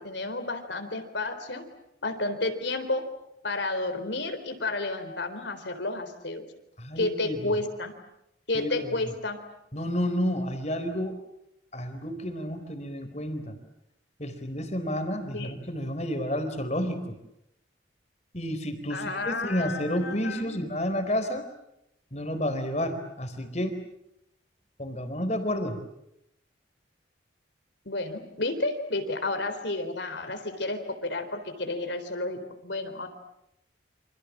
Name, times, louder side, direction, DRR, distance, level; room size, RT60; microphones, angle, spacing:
voice 1, 0.0-1.6 2.0-3.0 3.4-6.5 7.0-7.9 8.5-9.4 15.3-15.6 18.9-20.6 27.9-33.1, left 2 dB, 65° left, 7 dB, 4.0 m, -31 dB
voice 2, 6.8-7.5 8.5-9.1 9.7-11.2 11.7-13.6 14.2-17.2 18.3-21.4 22.1-23.8 24.8-25.8, equal, 35° left, 8 dB, 4.0 m, -30 dB
29.0 x 27.0 x 7.4 m, 0.81 s
head